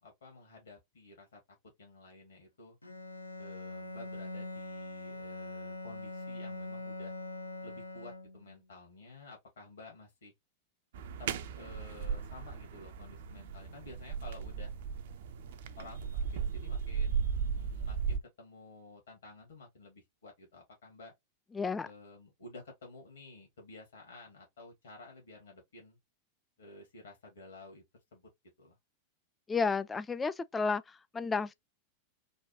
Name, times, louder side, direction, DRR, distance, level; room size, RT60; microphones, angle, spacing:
voice 1, 0.0-2.8 3.4-7.1 7.6-10.3 11.2-14.7 15.7-21.1 21.8-26.0 26.6-27.8 28.1-28.3 28.6-28.8, left 2 dB, 65° left, 1.6 m, -52 dB
Bowed string instrument, 2.8-8.6, left 2 dB, 85° left, 0.5 m, -43 dB
sound 1, 10.9-18.2, right 6 dB, 55° right, 0.4 m, -36 dB
voice 2, 21.5-21.9 29.5-31.5, left 4 dB, 15° left, 0.3 m, -32 dB
4.0 x 2.2 x 2.7 m
figure-of-eight pair, 90°, 0 cm